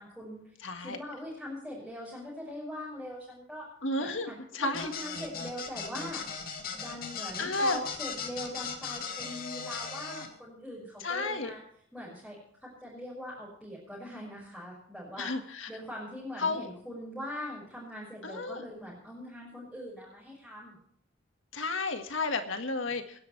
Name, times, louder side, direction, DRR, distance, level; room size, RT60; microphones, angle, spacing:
voice 1, 0.0-3.7 4.0-6.2 6.7-11.6 11.9-15.3 15.7-20.8, equal, ahead, -7 dB, 5.9 m, -42 dB
voice 2, 0.6-1.0 3.8-4.9 7.4-7.8 11.0-11.5 15.2-15.7 16.4-16.7 18.2-18.6 21.5-23.2, left 3 dB, 75° left, 7 dB, 1.8 m, -32 dB
sound 1, 4.7-10.3, left 6 dB, 50° left, 2.3 m, -38 dB
27.5 x 11.0 x 3.3 m, 0.65 s
head